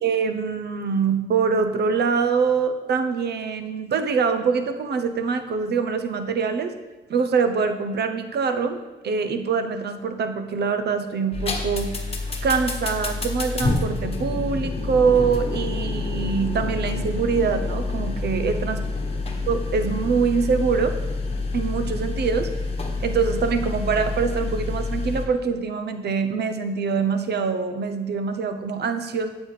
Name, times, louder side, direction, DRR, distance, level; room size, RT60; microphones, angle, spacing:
voice 1, 0.0-6.7 7.1-12.0 12.4-18.8 19.5-21.0 21.5-22.5 23.0-29.3, right 5 dB, 55° right, 8 dB, 0.8 m, -24 dB
sound 1, 11.3-25.3, left 3 dB, 30° left, 1.3 m, -28 dB
8.7 x 8.1 x 3.3 m, 1.2 s
cardioid pair, 90°, 20 cm